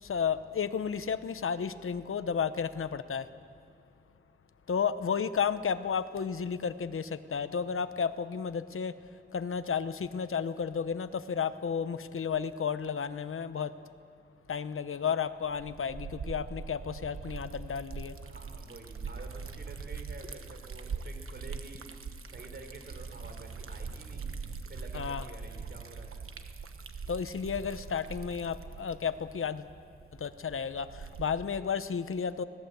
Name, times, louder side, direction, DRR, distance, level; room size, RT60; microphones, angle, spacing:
voice 1, 0.0-3.3 4.7-8.9 9.3-13.7 14.5-18.2 24.9-25.3 27.1-29.7 30.2-32.4, left 6 dB, 80° left, 12 dB, 0.9 m, -32 dB
Liquid, 15.4-31.5, right 5 dB, 85° right, 1.2 m, -42 dB
voice 2, 18.2-21.9 22.3-24.3 24.7-26.2, right 2 dB, 55° right, 4 dB, 3.8 m, -49 dB
24.5 x 18.5 x 8.1 m, 2.4 s
wide cardioid pair, 70°, 21 cm